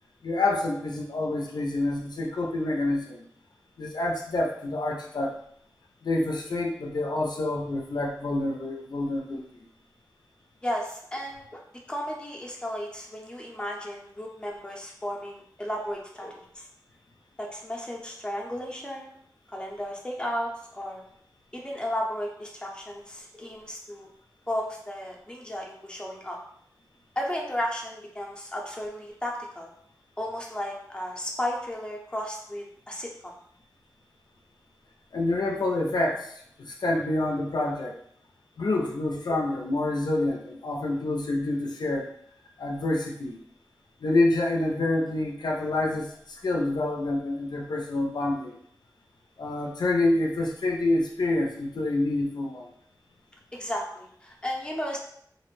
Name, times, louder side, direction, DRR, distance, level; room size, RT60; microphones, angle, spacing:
voice 1, 0.2-3.2 3.8-5.4 6.0-9.4 35.1-36.3 36.6-38.0 38.6-42.1 42.6-43.4 44.0-46.1 46.4-48.5 49.4-52.7, left 2 dB, 80° left, 0 dB, 0.4 m, -27 dB
voice 2, 10.6-11.6 11.9-16.7 17.4-19.2 19.5-21.0 21.5-24.1 24.5-26.4 27.2-29.7 30.2-33.3 53.5-55.0, equal, 15° left, -1 dB, 0.6 m, -34 dB
2.5 x 2.0 x 3.0 m, 0.67 s
wide cardioid pair, 70°, 7 cm